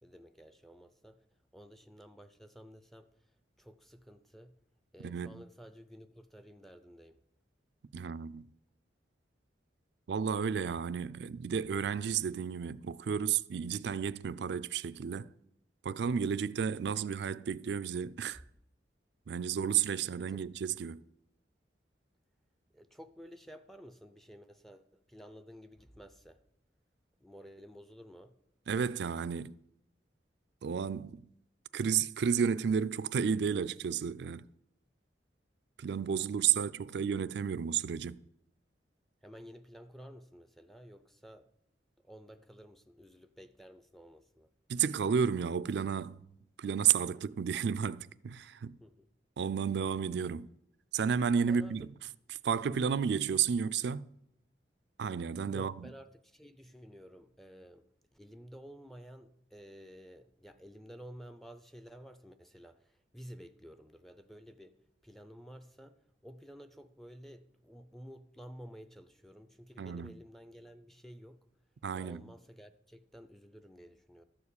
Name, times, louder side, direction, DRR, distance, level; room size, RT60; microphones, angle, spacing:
voice 1, 0.0-1.2 1.5-3.1 3.6-4.6 4.9-7.2 20.3-20.4 22.7-26.4 27.2-28.4 36.4-36.5 39.2-41.5 42.0-44.5 48.8-49.1 51.5-51.9 55.4-57.8 58.1-64.8 65.0-71.4 71.9-74.2, equal, ahead, 0.4 m, -52 dB
voice 2, 5.0-5.4 7.9-8.5 10.1-15.3 15.8-18.4 19.3-21.0 28.7-29.5 30.6-31.2 31.7-34.5 35.8-38.2 44.7-46.3 46.6-48.8 49.4-50.5 50.9-51.9 52.4-54.1 55.0-55.9 69.8-70.1 71.8-72.2, right 7 dB, 65° right, 0.4 m, -32 dB
13.0 x 4.8 x 8.4 m
head